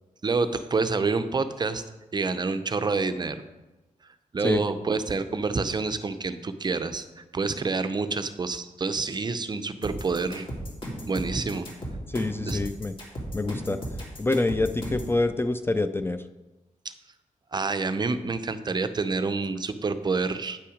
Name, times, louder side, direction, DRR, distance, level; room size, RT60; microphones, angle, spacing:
voice 1, 0.2-1.8 2.1-3.4 4.3-10.5 11.1-11.7 12.4-12.6 17.5-20.6, right 4 dB, 30° right, 11 dB, 0.5 m, -28 dB
sound 1, 9.8-15.2, right 1 dB, 40° left, 2.4 m, -35 dB
voice 2, 12.1-12.9 13.3-13.8 14.2-16.2, left 2 dB, 15° left, 9 dB, 0.3 m, -26 dB
8.7 x 5.7 x 5.0 m, 1.1 s
wide cardioid pair, 110°, 14 cm